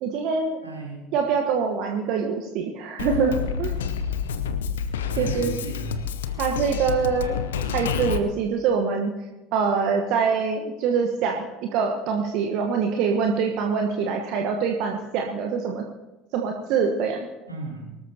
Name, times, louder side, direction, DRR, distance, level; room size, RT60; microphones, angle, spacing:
voice 1, 0.0-0.6 1.1-3.3 3.6-3.8 5.2-5.6 6.4-7.4 7.7-9.1 9.5-15.8 16.3-17.3, right 6 dB, 55° right, 2 dB, 1.2 m, -24 dB
voice 2, 0.6-1.1 5.0-6.0 17.5-18.0, right 3 dB, 90° right, -2 dB, 3.6 m, -34 dB
Drum kit, 3.0-8.2, left 8 dB, 70° left, 0.8 m, -29 dB
23.5 x 13.5 x 2.9 m, 1.0 s
figure-of-eight pair, 65°, 0 cm